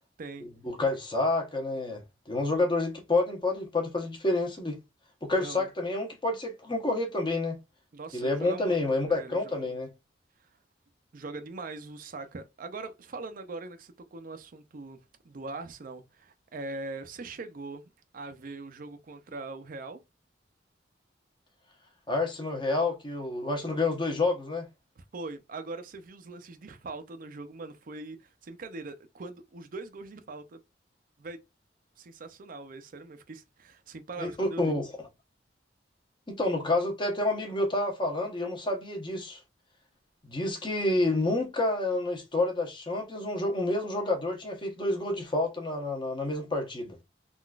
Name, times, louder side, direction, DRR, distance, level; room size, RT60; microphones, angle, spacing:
voice 1, 0.6-4.8 5.2-7.6 8.1-9.9 22.1-24.7 34.2-34.9 36.3-39.4 40.2-47.0, left 2 dB, 25° left, 0.9 m, -29 dB
voice 2, 5.4-5.7 7.9-8.8 9.1-9.8 11.1-15.0 15.2-20.0 25.0-30.6 31.2-31.4 32.0-34.8, right 3 dB, 50° right, 0.5 m, -41 dB
3.8 x 2.4 x 2.3 m
head